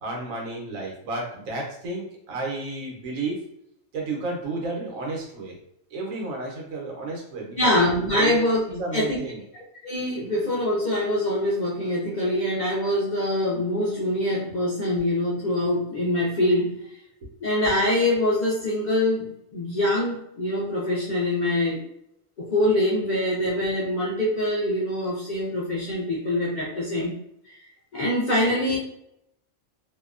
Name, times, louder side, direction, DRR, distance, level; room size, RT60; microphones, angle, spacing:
voice 1, 0.0-3.4 3.9-5.6 5.9-7.7 8.1-8.4 8.7-9.4 28.4-28.8, right 2 dB, 90° right, -1 dB, 1.2 m, -32 dB
voice 2, 7.6-8.6 8.9-9.2 9.8-16.8 17.4-21.8 22.4-27.2 27.5-27.6 27.9-28.8, left 1 dB, 55° left, -6 dB, 0.5 m, -24 dB
2.7 x 2.1 x 2.4 m, 0.78 s
omnidirectional pair, 1.4 m